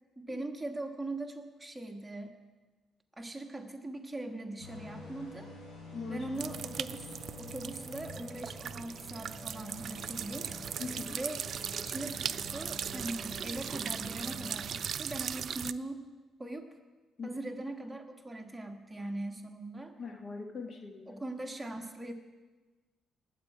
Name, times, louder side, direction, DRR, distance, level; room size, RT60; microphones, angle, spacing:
voice 1, 0.2-2.4 3.1-5.5 6.1-10.5 11.1-16.0 16.4-16.7 17.2-19.9 21.1-22.1, right 2 dB, 15° right, 3 dB, 1.4 m, -41 dB
sound 1, 4.6-14.8, left 2 dB, 85° left, 4.2 m, -48 dB
voice 2, 5.9-6.3 10.8-11.2 17.2-17.3 20.0-21.2, left 4 dB, 50° left, 4 dB, 1.4 m, -41 dB
sound 2, 6.4-15.7, right 8 dB, 60° right, 0.4 m, -39 dB
20.0 x 8.2 x 4.7 m, 1.3 s
cardioid pair, 90°, 0 cm